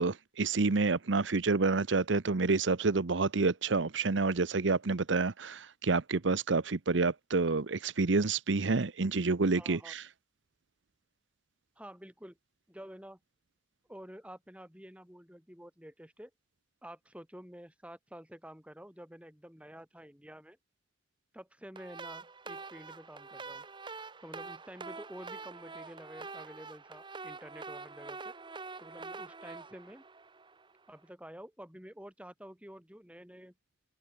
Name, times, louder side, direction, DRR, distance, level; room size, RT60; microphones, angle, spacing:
voice 1, 0.0-10.1, right 3 dB, 80° right, 0.9 m, -28 dB
voice 2, 9.6-9.9 11.8-12.4 12.7-13.2 13.9-16.3 16.8-20.6 21.3-23.7 24.2-28.3 28.8-30.1 30.9-33.5, equal, 5° right, 5.2 m, -50 dB
sound 1, 21.8-30.9, right 4 dB, 25° right, 1.0 m, -46 dB
head